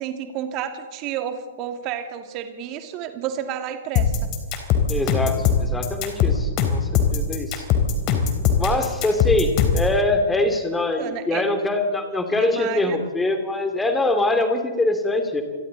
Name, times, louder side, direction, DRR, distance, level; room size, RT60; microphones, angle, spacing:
voice 1, 0.0-4.1 10.7-11.5 12.4-13.0, right 10 dB, 30° right, 6 dB, 2.4 m, -31 dB
sound 1, 4.0-9.9, left 7 dB, 30° left, 3.6 m, -20 dB
voice 2, 4.9-7.7 8.6-15.4, left 2 dB, 10° left, 6 dB, 2.8 m, -23 dB
28.5 x 23.0 x 4.1 m, 1.4 s
figure-of-eight pair, 110°, 0 cm